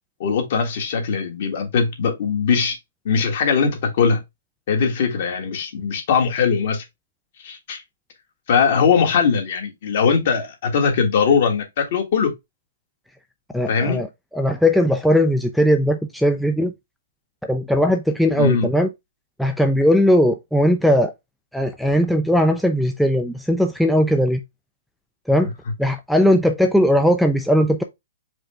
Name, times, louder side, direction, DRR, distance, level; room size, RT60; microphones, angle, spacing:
voice 1, 0.2-2.8 3.0-4.2 4.7-6.8 7.4-7.8 8.5-12.3 13.7-14.0 18.3-18.7, left 6 dB, 55° left, 1.5 m, -20 dB
voice 2, 13.5-14.1 14.3-16.7 17.5-18.9 19.4-21.1 21.5-24.4 25.3-25.5 25.8-27.8, equal, ahead, 0.3 m, -18 dB
4.8 x 2.2 x 4.6 m
hypercardioid pair, 155°, 0 cm